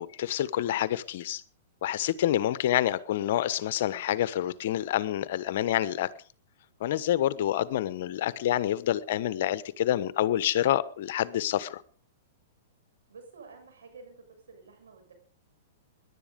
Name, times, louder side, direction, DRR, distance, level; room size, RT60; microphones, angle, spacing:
voice 1, 0.0-1.4 1.8-6.1 6.8-11.8, left 12 dB, 60° left, 1.1 m, -27 dB
voice 2, 13.1-15.1, right 4 dB, 85° right, 6.4 m, -50 dB
18.5 x 11.0 x 5.2 m
hypercardioid pair, 130°, 0 cm